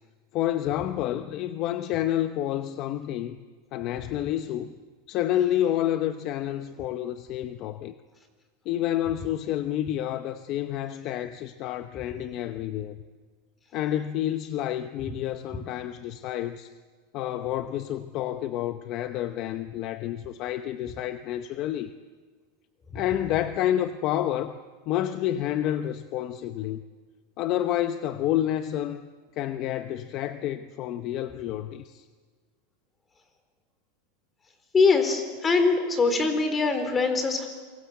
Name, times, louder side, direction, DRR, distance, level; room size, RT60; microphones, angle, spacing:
voice 1, 0.3-3.4 3.7-4.7 5.1-7.9 8.6-13.0 13.7-16.7 17.1-21.9 22.9-24.6 24.9-26.8 27.4-29.0 29.3-32.0, left 12 dB, 40° left, 0.9 m, -29 dB
voice 2, 34.7-37.5, left 4 dB, 15° left, 3.9 m, -23 dB
28.0 x 24.0 x 8.3 m
supercardioid pair, 150°, 0 cm